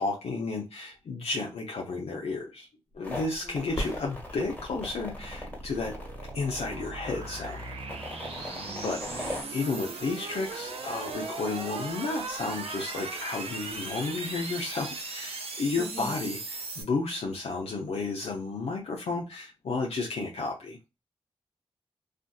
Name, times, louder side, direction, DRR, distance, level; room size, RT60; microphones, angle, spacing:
voice 1, 0.0-2.7 2.9-5.9 6.3-7.6 8.8-20.8, left 3 dB, 75° left, 0.6 m, -32 dB
sound 1, 3.0-9.4, left 1 dB, 15° left, 1.3 m, -40 dB
voice 2, 3.4-4.0 8.4-8.9 15.8-16.2, right 1 dB, 10° right, 0.6 m, -43 dB
sound 2, 3.4-16.8, right 3 dB, 70° right, 0.6 m, -38 dB
sound 3, 3.7-4.9 8.8-8.9, left 1 dB, 30° left, 1.1 m, -36 dB
2.5 x 2.5 x 2.2 m
cardioid pair, 50°, 10 cm